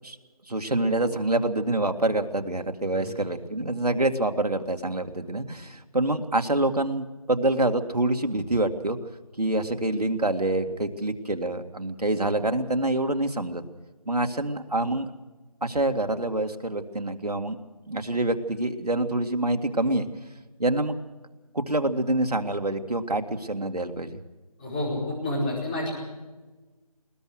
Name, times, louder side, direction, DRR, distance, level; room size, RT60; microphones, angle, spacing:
voice 1, 0.5-9.0 9.4-13.6 14.1-15.1 15.6-17.6 17.9-20.1 20.6-21.0 21.5-24.1, right 2 dB, 80° right, 6 dB, 2.1 m, -26 dB
voice 2, 24.6-25.9, left 1 dB, 15° left, -5 dB, 4.7 m, -29 dB
20.5 x 19.5 x 6.4 m, 1.2 s
figure-of-eight pair, 170°, 20 cm